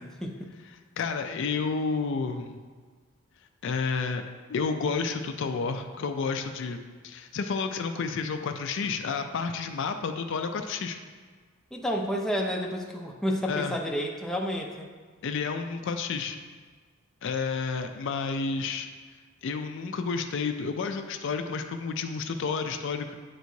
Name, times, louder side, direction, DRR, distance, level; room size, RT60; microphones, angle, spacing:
voice 1, 1.0-2.5 3.6-4.2 4.5-6.8 7.0-11.0 13.5-13.7 15.2-16.4 17.2-18.9 19.4-23.1, left 5 dB, 60° left, 7 dB, 0.4 m, -30 dB
voice 2, 11.7-14.9, equal, ahead, 0 dB, 0.5 m, -30 dB
9.1 x 4.5 x 2.7 m, 1.5 s
head